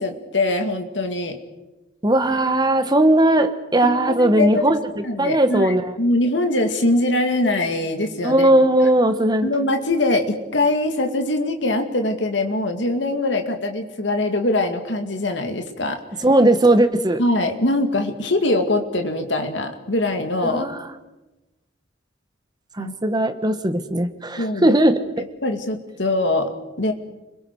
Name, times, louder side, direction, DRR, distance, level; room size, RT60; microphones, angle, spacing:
voice 1, 0.0-1.4 3.8-4.7 5.0-8.5 9.4-16.0 17.2-20.7 22.8-22.9 24.4-24.7 25.4-26.5 26.8-26.9, left 2 dB, 80° left, 5 dB, 2.3 m, -22 dB
voice 2, 2.0-6.0 8.2-9.5 16.2-17.2 20.5-20.9 22.8-25.2, right 1 dB, 25° right, 9 dB, 1.4 m, -18 dB
30.0 x 22.5 x 4.9 m, 1.1 s
head